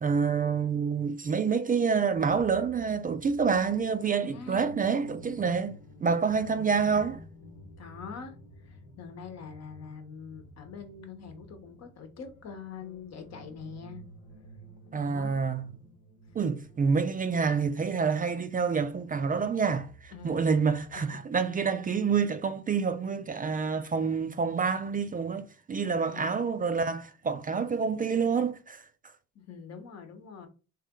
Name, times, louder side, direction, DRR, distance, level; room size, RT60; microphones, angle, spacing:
voice 1, 0.0-5.8 6.0-7.2 14.9-15.7 16.4-28.8, right 5 dB, 30° right, 0.3 m, -27 dB
sound 1, 2.1-21.0, equal, 80° left, 1.1 m, -52 dB
voice 2, 4.1-4.7 6.1-6.7 7.8-14.0 14.9-15.4 20.1-20.5 25.9-26.4 29.3-30.5, left 5 dB, 60° left, 1.0 m, -44 dB
3.1 x 2.9 x 3.6 m
cardioid pair, 90°, 30 cm